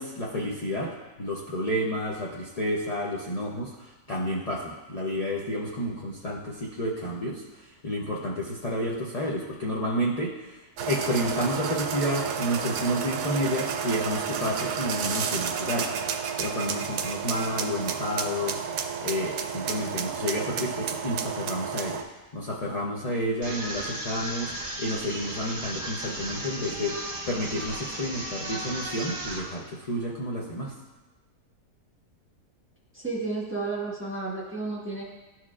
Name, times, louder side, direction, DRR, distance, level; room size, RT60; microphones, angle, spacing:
voice 1, 0.0-10.6 10.9-15.9 16.4-22.0 22.3-30.7, equal, 40° left, -4 dB, 0.5 m, -30 dB
sound 1, 10.8-22.0, right 7 dB, 75° right, 1.1 m, -31 dB
sound 2, 23.4-29.4, right 1 dB, 35° right, 1.0 m, -35 dB
voice 2, 32.9-35.0, right 3 dB, 10° right, -5 dB, 1.2 m, -32 dB
13.0 x 4.5 x 2.4 m, 1.1 s
omnidirectional pair, 1.7 m